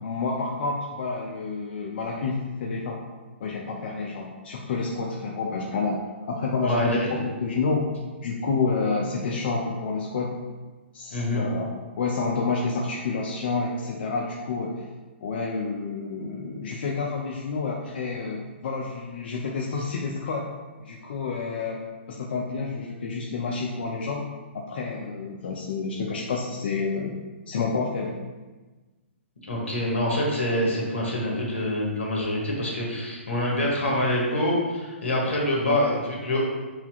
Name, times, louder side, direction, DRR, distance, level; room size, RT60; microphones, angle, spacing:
voice 1, 0.0-3.0 3.4-7.9 8.2-10.3 10.9-11.7 12.0-14.8 15.2-20.4 20.8-21.8 22.1-24.3 24.5-27.2 27.5-28.1 35.6-35.8, left 4 dB, 55° left, -1 dB, 0.5 m, -29 dB
voice 2, 6.6-7.1 11.1-11.4 29.4-36.4, left 1 dB, 80° left, -3 dB, 1.4 m, -26 dB
5.8 x 2.8 x 2.4 m, 1.3 s
figure-of-eight pair, 125°, 7 cm